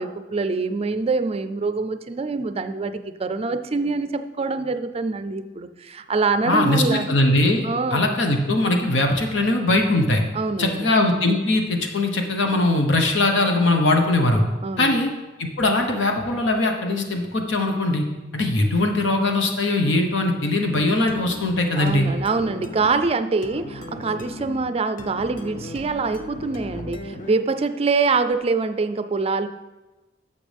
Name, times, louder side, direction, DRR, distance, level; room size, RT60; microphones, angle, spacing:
voice 1, 0.0-7.1 7.6-8.2 10.3-10.9 14.6-15.0 21.8-29.5, right 4 dB, 30° right, 10 dB, 0.4 m, -25 dB
voice 2, 6.5-7.7 7.9-10.2 10.6-14.4 14.8-15.1 15.4-18.0 18.3-22.1, left 2 dB, 75° left, 3 dB, 1.1 m, -20 dB
sound 1, 21.1-27.6, left 1 dB, 45° left, 0.7 m, -37 dB
11.5 x 6.9 x 3.4 m, 1.1 s
head